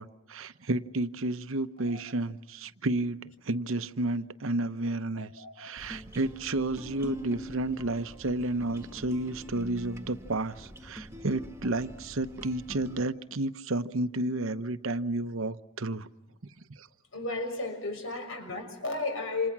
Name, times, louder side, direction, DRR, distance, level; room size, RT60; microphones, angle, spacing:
voice 1, 0.0-16.1 16.7-16.9, right 2 dB, 65° right, 0.9 m, -31 dB
voice 2, 5.1-5.7 17.1-19.5, left 3 dB, 65° left, 6.4 m, -34 dB
sound 1, 5.8-13.0, equal, 10° right, 1.6 m, -45 dB
29.0 x 27.5 x 6.1 m
head